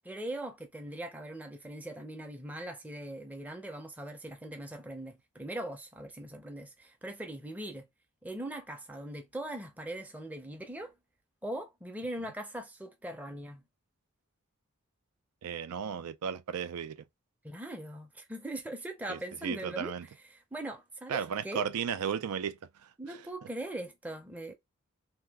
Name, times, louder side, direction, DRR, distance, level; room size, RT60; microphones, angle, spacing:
voice 1, 0.0-7.9 8.2-10.9 11.4-13.6 17.4-19.9 20.3-21.6 23.0-24.5, right 1 dB, 5° right, 0.5 m, -40 dB
voice 2, 15.4-17.0 19.1-20.1 21.1-23.2, right 7 dB, 90° right, 0.4 m, -35 dB
2.8 x 2.3 x 3.4 m
head